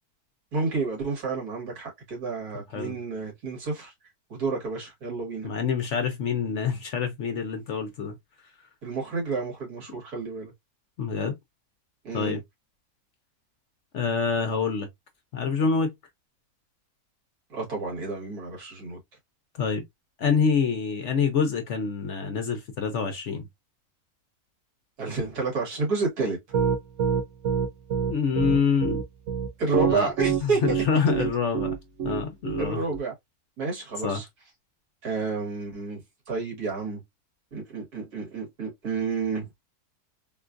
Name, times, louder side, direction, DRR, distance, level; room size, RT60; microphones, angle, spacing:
voice 1, 0.5-3.9 4.3-5.5 8.8-10.5 12.0-12.4 17.5-19.0 25.0-26.4 29.6-30.6 32.6-33.1 33.6-34.3 35.0-36.0 36.3-37.0 37.5-39.5, right 4 dB, 80° right, 2.1 m, -30 dB
voice 2, 5.4-8.2 11.0-11.3 12.1-12.4 13.9-14.9 15.3-15.9 19.6-19.8 20.2-23.5 28.1-29.0 29.9-30.1 30.4-31.7 32.0-32.8 34.0-34.2, left 5 dB, 60° left, 0.8 m, -26 dB
Piano, 26.5-33.0, right 7 dB, 65° right, 0.8 m, -25 dB
3.7 x 2.4 x 2.4 m
omnidirectional pair, 1.6 m